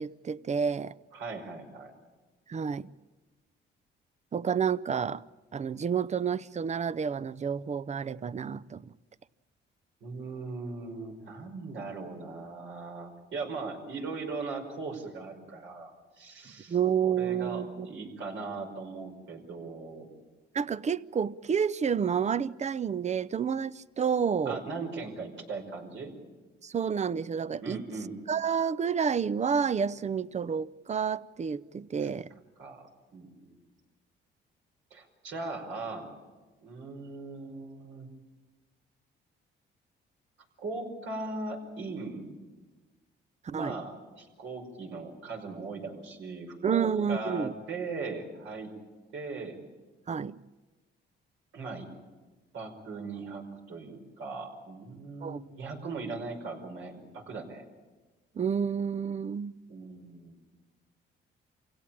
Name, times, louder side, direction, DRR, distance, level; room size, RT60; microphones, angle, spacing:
voice 1, 0.0-0.9 2.5-2.9 4.3-5.2 5.5-8.8 16.7-17.9 20.5-24.6 26.6-27.8 28.3-32.3 43.5-43.8 46.6-47.5 50.1-50.4 55.2-55.4 58.3-59.5, right 7 dB, 35° right, 0.7 m, -29 dB
voice 2, 1.1-1.9 10.0-16.8 17.0-20.1 24.5-26.1 27.6-28.2 32.6-33.6 34.9-36.2 36.6-38.1 40.6-42.4 43.5-48.7 49.1-49.6 51.5-51.9 52.5-57.7 59.7-60.4, right 3 dB, 75° right, 5.4 m, -39 dB
27.0 x 17.0 x 8.9 m
cardioid pair, 90°, 20 cm